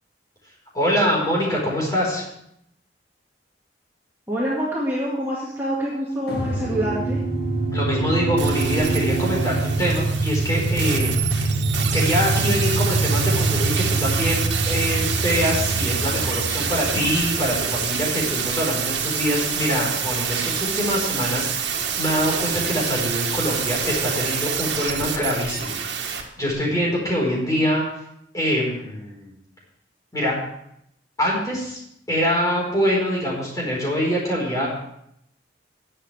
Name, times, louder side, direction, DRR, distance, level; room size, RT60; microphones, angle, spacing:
voice 1, 0.7-2.2 7.7-11.4 11.9-27.8 28.3-29.3 30.1-30.3 31.2-31.8 32.1-34.7, equal, 20° left, -3 dB, 4.5 m, -24 dB
voice 2, 4.3-7.2, equal, 15° right, -6 dB, 2.0 m, -26 dB
sound 1, 6.3-18.5, right 2 dB, 60° left, 1.9 m, -25 dB
sound 2, 8.4-26.2 26.5-26.6, right 7 dB, 80° right, 1.6 m, -27 dB
19.5 x 7.7 x 3.4 m, 0.76 s
head